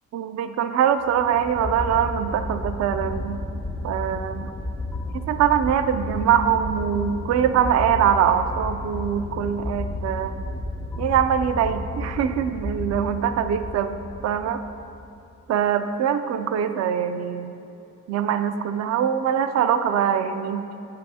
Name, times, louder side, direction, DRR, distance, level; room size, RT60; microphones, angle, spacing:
voice 1, 0.1-3.4 3.8-4.5 5.1-10.3 11.0-14.0 14.2-14.6 15.5-17.5 18.1-20.7, right 8 dB, 60° right, 10 dB, 0.4 m, -23 dB
sound 1, 1.0-15.2, left 2 dB, 5° left, 0.4 m, -32 dB
7.8 x 7.6 x 2.8 m, 2.6 s
cardioid pair, 90°, 30 cm